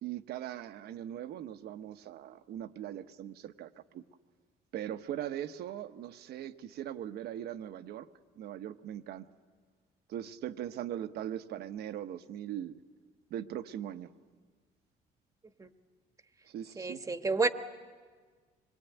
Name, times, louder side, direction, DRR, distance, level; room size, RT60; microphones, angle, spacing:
voice 1, 0.0-4.0 4.7-8.1 8.4-9.2 10.1-12.8 13.3-14.1 16.5-17.0, right 11 dB, 70° right, 10 dB, 1.1 m, -40 dB
voice 2, 16.8-17.5, right 3 dB, 20° right, 8 dB, 1.3 m, -29 dB
25.5 x 22.0 x 9.2 m, 1.6 s
cardioid pair, 110°, 17 cm